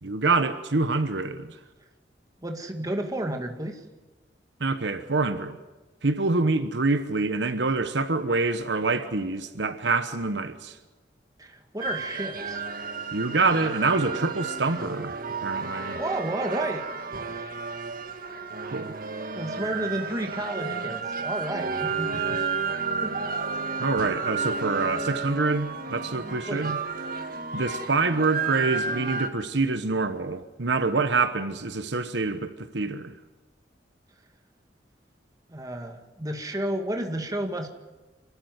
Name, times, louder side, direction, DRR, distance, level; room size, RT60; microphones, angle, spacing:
voice 1, 0.0-1.5 4.6-5.6 6.0-10.8 13.1-15.2 15.4-16.0 18.6-18.9 23.8-26.8 27.5-33.1, right 3 dB, 75° right, 1.1 m, -26 dB
voice 2, 2.4-3.8 11.4-12.6 16.0-16.8 17.3-17.5 19.3-22.1 23.0-23.3 26.5-26.7 35.5-37.7, right 1 dB, 20° right, 2.0 m, -32 dB
sound 1, 11.8-29.3, right 4 dB, 55° right, 1.7 m, -32 dB
27.0 x 13.0 x 9.6 m
head